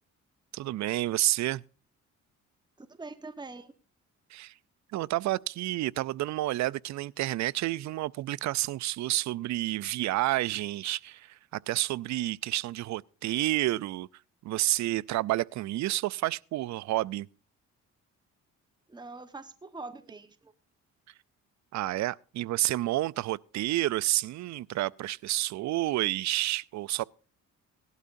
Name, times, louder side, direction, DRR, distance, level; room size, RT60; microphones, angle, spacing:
voice 1, 0.5-1.6 4.3-4.5 4.9-14.1 14.4-17.3 21.7-27.0, right 16 dB, 65° right, 0.5 m, -30 dB
voice 2, 2.8-3.7 18.9-20.5, right 3 dB, 15° right, 1.1 m, -43 dB
18.0 x 12.0 x 2.6 m
cardioid pair, 90°, 30 cm